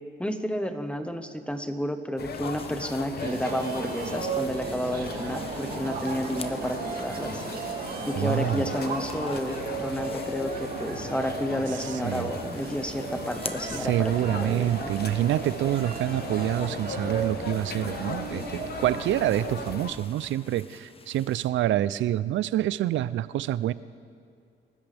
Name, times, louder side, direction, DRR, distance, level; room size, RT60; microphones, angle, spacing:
voice 1, 0.2-7.4 8.1-15.2, equal, 5° left, 7 dB, 1.2 m, -31 dB
sound 1, 2.2-19.9, left 5 dB, 55° left, 1.2 m, -38 dB
sound 2, 2.2-6.8 7.1-11.3 11.6-21.5, left 4 dB, 30° left, 1.0 m, -48 dB
sound 3, 3.2-19.7, right 4 dB, 50° right, 2.5 m, -35 dB
voice 2, 8.2-8.7 12.0-12.3 13.8-23.7, right 13 dB, 70° right, 17 dB, 0.5 m, -27 dB
28.0 x 13.5 x 3.5 m, 2.3 s
cardioid pair, 90°, 20 cm